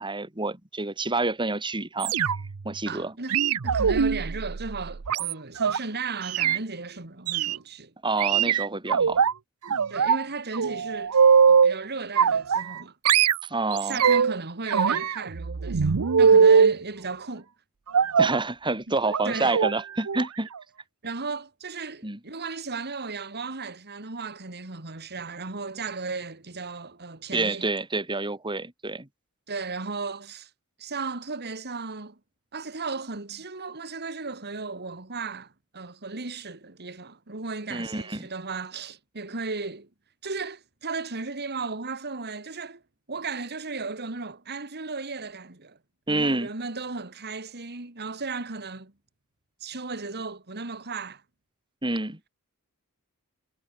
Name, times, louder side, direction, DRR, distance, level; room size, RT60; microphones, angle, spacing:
voice 1, 0.0-2.1 2.6-3.1 8.0-9.2 13.4-14.0 18.2-20.5 22.0-22.2 27.3-29.1 37.7-38.3 46.1-46.5 51.8-52.2, right 2 dB, 20° right, 3.1 m, -28 dB
sound 1, 2.0-2.6 3.3-5.8 6.2-6.6 7.3-7.6 8.2-9.3 9.7-10.2 10.5-11.8 12.2-12.8 13.1-14.4 14.7-16.8 17.9-18.4 19.1-19.2 19.5-19.7 20.1-20.3 20.6-20.7, right 6 dB, 80° right, 0.7 m, -21 dB
voice 2, 2.8-3.4 3.6-7.9 9.9-11.2 11.5-12.9 13.8-17.5 18.9-19.0 19.2-19.6 21.0-27.7 29.5-30.5 30.8-32.2 32.5-39.9 40.2-42.8 43.1-45.8 46.1-48.9 49.6-51.2, right 4 dB, 50° right, 2.7 m, -35 dB
head